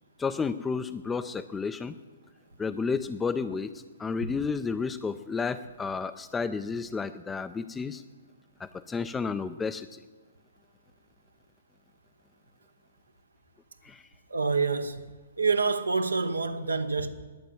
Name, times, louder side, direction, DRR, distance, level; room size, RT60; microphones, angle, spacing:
voice 1, 0.2-1.9 2.6-3.7 4.0-8.0 8.6-10.0 13.8-14.0, left 5 dB, 10° left, 0.4 m, -31 dB
voice 2, 14.3-15.1 15.4-17.1, right 4 dB, 85° right, 1.0 m, -27 dB
11.0 x 8.9 x 8.9 m
figure-of-eight pair, 125°, 0 cm